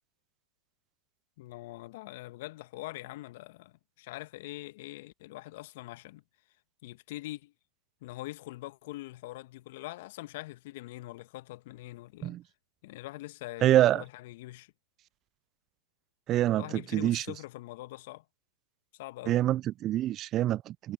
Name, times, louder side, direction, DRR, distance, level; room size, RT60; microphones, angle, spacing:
voice 1, 1.4-6.2 6.8-7.5 8.0-12.4 12.8-14.7 16.5-18.2 19.0-19.4, left 18 dB, 55° left, 1.4 m, -43 dB
voice 2, 13.6-14.0 16.3-17.2 19.3-20.9, right 13 dB, 35° right, 0.4 m, -26 dB
hypercardioid pair, 110°, 0 cm